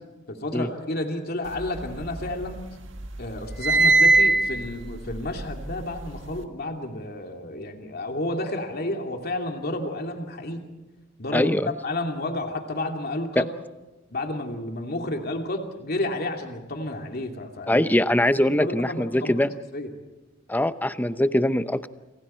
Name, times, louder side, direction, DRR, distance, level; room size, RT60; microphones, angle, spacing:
voice 1, 0.3-2.6 3.2-10.6 11.2-11.5 11.8-13.5 14.1-17.8 18.3-19.3 19.7-19.9, left 1 dB, 55° left, 3 dB, 2.8 m, -31 dB
sound 1, 1.6-2.7 3.0-6.4, right 2 dB, 70° right, 1.8 m, -22 dB
voice 2, 11.3-11.7 13.4-13.5 17.7-19.5 20.5-21.9, left 1 dB, 10° left, 12 dB, 0.7 m, -22 dB
28.5 x 25.5 x 4.5 m, 1.1 s
head